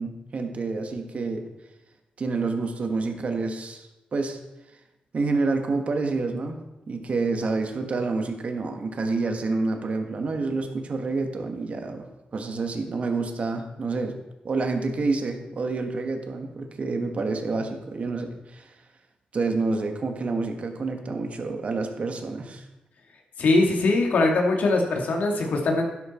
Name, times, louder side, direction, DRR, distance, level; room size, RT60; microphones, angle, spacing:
voice 1, 0.0-1.4 2.2-4.4 5.1-6.6 6.9-12.1 12.3-14.1 14.4-18.7 19.3-22.6, right 3 dB, 50° right, 5 dB, 1.7 m, -28 dB
voice 2, 23.4-25.9, left 2 dB, 75° left, 2 dB, 2.4 m, -21 dB
11.5 x 11.0 x 4.5 m, 0.97 s
cardioid pair, 90°, 3 cm